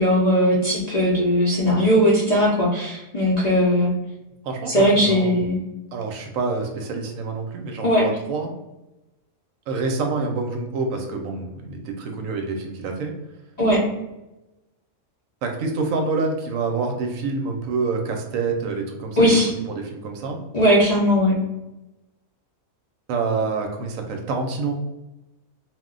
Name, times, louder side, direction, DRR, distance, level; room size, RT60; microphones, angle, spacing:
voice 1, 0.0-3.9 4.7-5.6 7.8-8.0 13.6-13.8 19.2-19.5 20.5-21.4, equal, 45° left, -7 dB, 0.5 m, -18 dB
voice 2, 4.4-5.4 5.9-8.5 9.7-13.1 15.4-20.4 23.1-24.8, right 4 dB, 75° right, 3 dB, 0.9 m, -27 dB
2.4 x 2.1 x 3.7 m, 0.99 s
omnidirectional pair, 1.4 m